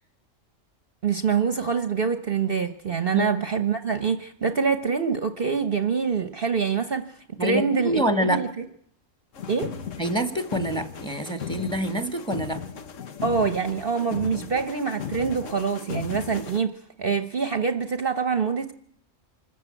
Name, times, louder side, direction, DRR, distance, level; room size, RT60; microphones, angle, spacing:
voice 1, 1.0-7.1 7.4-8.5 9.5-9.7 13.2-18.7, right 5 dB, 45° right, 9 dB, 1.1 m, -25 dB
voice 2, 7.4-8.4 10.0-12.6, right 1 dB, 5° left, 8 dB, 1.9 m, -26 dB
sound 1, 9.3-16.6, left 7 dB, 70° left, 1.5 m, -36 dB
25.5 x 14.5 x 9.0 m, 0.69 s
omnidirectional pair, 1.4 m